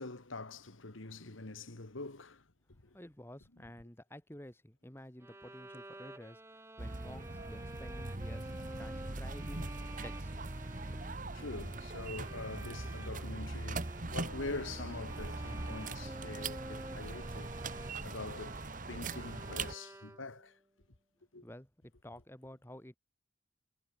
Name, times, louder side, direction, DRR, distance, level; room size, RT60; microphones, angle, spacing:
voice 1, 0.0-2.4 11.3-17.5 18.0-18.6 18.9-20.5 21.3-21.5, left 3 dB, 80° left, 1.8 m, -44 dB
voice 2, 2.9-6.4 6.8-8.5 8.8-9.7 10.0-10.3 21.4-21.7 22.0-23.0, left 1 dB, 10° left, 1.7 m, -51 dB
Bowed string instrument, 5.2-20.5, right 1 dB, 15° right, 1.4 m, -51 dB
sound 1, 6.8-19.8, right 2 dB, 40° right, 1.4 m, -41 dB
head